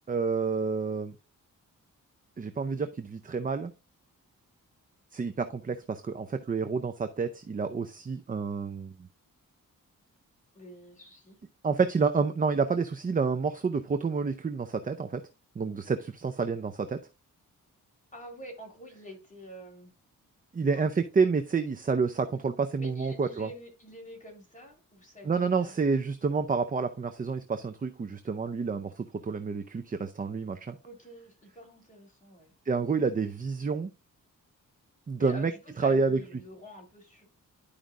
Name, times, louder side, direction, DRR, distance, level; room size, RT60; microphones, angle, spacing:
voice 1, 0.1-1.1 2.4-3.7 5.1-9.1 11.6-15.2 15.6-17.0 20.5-23.5 25.2-30.8 32.7-33.9 35.1-35.5 35.8-36.2, right 5 dB, 25° right, 0.5 m, -29 dB
voice 2, 10.5-11.4 18.1-19.9 20.7-20.9 22.8-25.8 30.8-32.5 35.2-37.3, equal, 25° left, 3.7 m, -47 dB
11.5 x 5.0 x 2.5 m
wide cardioid pair, 115°, 32 cm